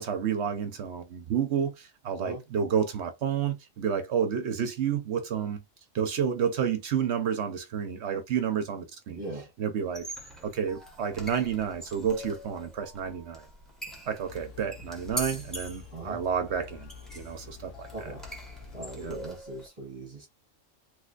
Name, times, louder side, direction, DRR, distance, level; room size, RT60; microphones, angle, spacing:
voice 1, 0.0-5.6 5.9-9.2 9.6-10.1 10.4-13.5 14.1-16.9 17.2-18.1 19.0-19.2, right 7 dB, 65° right, 0.9 m, -30 dB
voice 2, 9.1-9.5 15.9-16.2 17.9-18.2 18.7-20.3, right 2 dB, 30° right, 1.1 m, -40 dB
sound 1, 9.8-19.7, right 1 dB, ahead, 1.0 m, -43 dB
sound 2, 14.3-19.3, left 6 dB, 80° left, 1.1 m, -48 dB
3.2 x 3.2 x 2.4 m
omnidirectional pair, 1.3 m